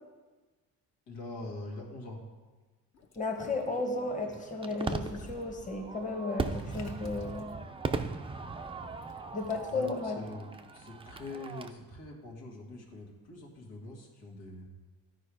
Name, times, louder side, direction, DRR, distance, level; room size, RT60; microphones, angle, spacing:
voice 1, 1.1-2.2 9.7-14.7, left 2 dB, 85° left, -1 dB, 1.9 m, -44 dB
Water / Liquid, 2.9-5.4 6.5-7.5 9.0-10.0, left 3 dB, 45° left, 1.1 m, -50 dB
voice 2, 3.2-7.5 9.3-10.2, left 3 dB, 20° left, 2 dB, 1.2 m, -34 dB
Fireworks, 3.4-11.7, right 4 dB, 15° right, 0.4 m, -39 dB
12.0 x 4.6 x 4.9 m, 1.3 s
cardioid pair, 95°, 38 cm